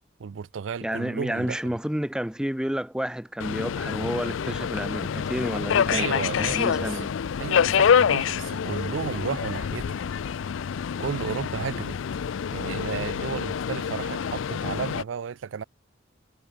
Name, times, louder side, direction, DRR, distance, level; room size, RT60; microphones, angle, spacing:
voice 1, 0.2-1.6 5.9-7.1 7.4-9.9 11.0-12.0 12.5-15.6, right 6 dB, 80° right, 0.4 m, -33 dB
voice 2, 0.8-6.1 6.4-7.1, equal, 5° right, 0.5 m, -30 dB
Subway metro underground, 3.4-15.0, left 7 dB, 85° left, 0.4 m, -26 dB
head